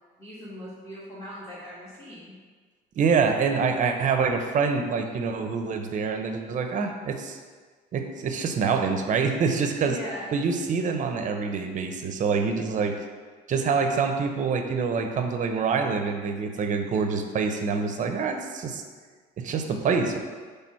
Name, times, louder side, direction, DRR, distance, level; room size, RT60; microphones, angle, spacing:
voice 1, 0.2-2.3 9.8-10.4, equal, 15° left, -10 dB, 1.8 m, -40 dB
voice 2, 3.0-7.4 7.9-10.0 10.3-12.9 13.5-18.8 19.4-20.2, right 5 dB, 50° right, 5 dB, 0.7 m, -26 dB
6.1 x 3.4 x 5.6 m, 1.5 s
cardioid pair, 110°, 17 cm